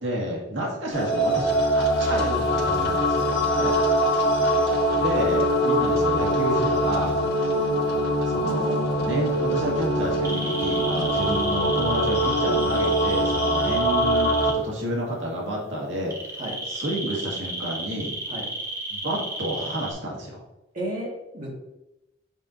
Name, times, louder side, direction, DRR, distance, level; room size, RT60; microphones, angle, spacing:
voice 1, 0.0-3.4 5.0-7.2 8.3-16.4 16.7-18.2 18.9-20.4, right 1 dB, 90° right, -3 dB, 1.9 m, -30 dB
sound 1, 0.9-14.5, equal, 55° left, 1.3 m, -23 dB
voice 2, 3.4-3.8 11.1-11.3 16.4-16.6 18.3-18.5 20.7-21.6, right 1 dB, 45° right, -4 dB, 1.9 m, -33 dB
sound 2, 10.2-14.5 16.1-19.9, right 1 dB, 15° right, 1.0 m, -32 dB
7.3 x 5.0 x 2.7 m, 0.89 s
head